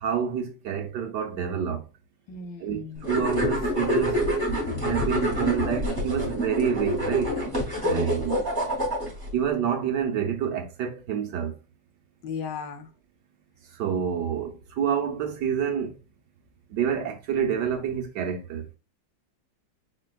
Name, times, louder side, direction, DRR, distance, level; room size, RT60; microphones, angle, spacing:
voice 1, 0.0-1.8 2.6-4.2 4.8-7.4 7.8-8.5 9.3-11.5 13.8-15.9 16.7-18.6, right 8 dB, 70° right, 1.5 m, -28 dB
voice 2, 2.3-3.1 7.7-8.3 12.2-12.9, left 5 dB, 80° left, 1.5 m, -36 dB
sound 1, 3.0-9.3, equal, 10° right, 2.4 m, -27 dB
4.9 x 4.4 x 2.3 m
omnidirectional pair, 2.0 m